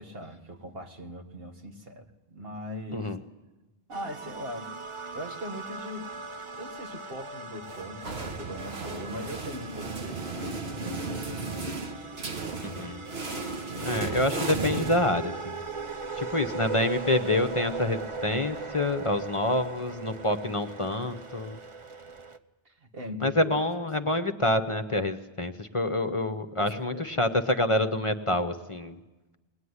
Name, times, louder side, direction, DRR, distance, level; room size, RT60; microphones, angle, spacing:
voice 1, 0.0-3.1 3.9-4.7 5.1-6.1 6.6-11.9 13.7-14.0 22.7-23.4 26.6-27.1, equal, 65° right, 3 dB, 2.0 m, -40 dB
sound 1, 3.9-22.4, right 4 dB, 30° right, 0.8 m, -39 dB
sound 2, 7.7-15.6, right 3 dB, 80° right, 1.7 m, -35 dB
voice 2, 12.6-13.0 13.8-15.6 16.2-21.6 23.2-29.0, left 1 dB, 30° left, 8 dB, 0.9 m, -27 dB
21.5 x 19.5 x 9.7 m, 1.1 s
omnidirectional pair, 1.1 m